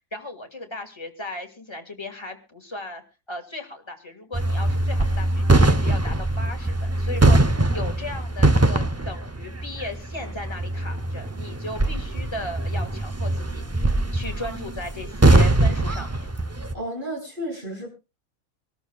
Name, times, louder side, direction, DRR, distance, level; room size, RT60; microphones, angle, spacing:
voice 1, 0.1-3.0 3.3-16.3, left 2 dB, 20° left, 4 dB, 2.0 m, -36 dB
sound 1, 4.3-16.7, right 2 dB, 20° right, 0.4 m, -22 dB
voice 2, 16.7-17.9, equal, 35° right, -2 dB, 8.1 m, -32 dB
26.0 x 13.5 x 2.3 m, 0.29 s
omnidirectional pair, 1.4 m